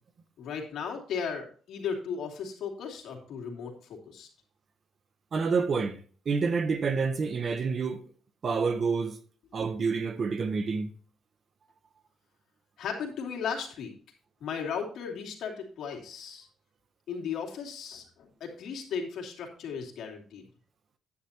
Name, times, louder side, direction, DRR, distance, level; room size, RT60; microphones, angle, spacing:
voice 1, 0.4-4.3 12.8-13.9 14.4-16.5 17.1-20.4, left 6 dB, 75° left, 2.7 m, -36 dB
voice 2, 5.3-6.0 6.2-8.0 8.4-9.2 9.5-10.9, right 5 dB, 45° right, 0.9 m, -28 dB
10.0 x 9.8 x 2.9 m
cardioid pair, 120°, 0 cm